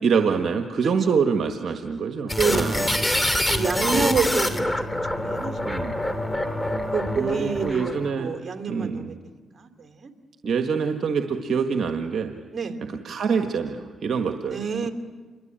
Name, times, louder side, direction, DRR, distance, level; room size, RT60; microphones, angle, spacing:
voice 1, 0.0-2.9 3.8-4.1 5.6-6.0 7.1-8.3 8.7-9.1 10.4-12.3 13.0-14.9, right 5 dB, 65° right, 5 dB, 1.6 m, -25 dB
sound 1, 2.3-8.1, left 1 dB, 10° left, 2.9 m, -25 dB
voice 2, 2.9-5.6 6.9-9.2 9.6-10.1 12.5-12.8 14.5-14.9, right 5 dB, 50° right, 6 dB, 3.1 m, -28 dB
28.5 x 23.0 x 8.9 m, 1.4 s
supercardioid pair, 60°, 0 cm